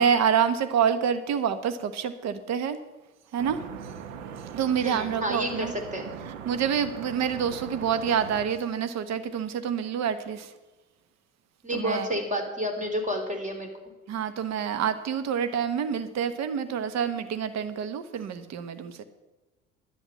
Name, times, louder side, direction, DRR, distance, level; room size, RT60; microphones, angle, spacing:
voice 1, 0.0-2.8 3.3-3.6 4.5-5.7 6.4-10.5 11.7-12.1 14.1-19.0, right 7 dB, 45° right, 11 dB, 1.1 m, -27 dB
sound 1, 3.4-8.5, right 7 dB, 70° right, 1.1 m, -40 dB
voice 2, 4.8-6.1 11.6-13.7, equal, 20° right, 4 dB, 3.5 m, -30 dB
11.0 x 9.1 x 7.4 m, 1.1 s
hypercardioid pair, 65°, 39 cm